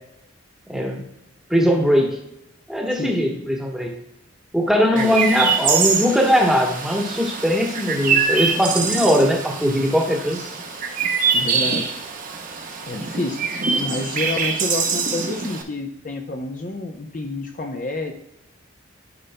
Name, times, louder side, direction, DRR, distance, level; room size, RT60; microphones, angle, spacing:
voice 1, 0.7-1.0 1.5-2.2 2.7-3.9 4.5-10.4, equal, ahead, 0 dB, 1.1 m, -20 dB
voice 2, 2.9-3.5 4.9-5.2 11.3-12.0 12.9-13.5 13.7-18.1, left 2 dB, 40° left, 3 dB, 0.6 m, -29 dB
Chirp tweet, 5.0-15.6, right 5 dB, 40° right, 0.9 m, -24 dB
12.0 x 5.5 x 2.2 m, 0.85 s
head